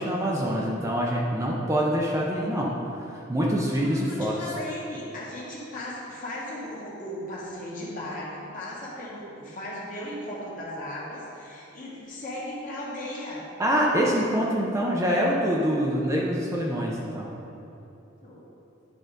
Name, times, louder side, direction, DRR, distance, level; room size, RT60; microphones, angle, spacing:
voice 1, 0.0-2.7 3.3-4.3 13.6-17.3, equal, 15° right, -3 dB, 0.6 m, -25 dB
voice 2, 2.3-2.7 3.8-13.5 17.7-17.8 18.2-18.4, left 1 dB, 40° left, -6 dB, 1.6 m, -37 dB
10.0 x 3.8 x 3.8 m, 2.9 s
head